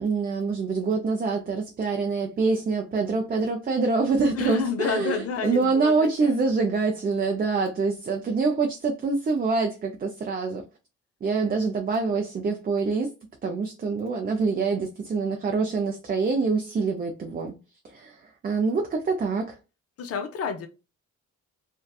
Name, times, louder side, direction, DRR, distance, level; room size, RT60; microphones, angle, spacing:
voice 1, 0.0-10.6 11.2-13.1 13.4-17.5 17.8-19.6, right 4 dB, 30° right, 0.5 m, -25 dB
voice 2, 4.3-6.4 20.0-20.7, left 5 dB, 50° left, 0.7 m, -30 dB
2.6 x 2.2 x 2.3 m
cardioid pair, 90°, 30 cm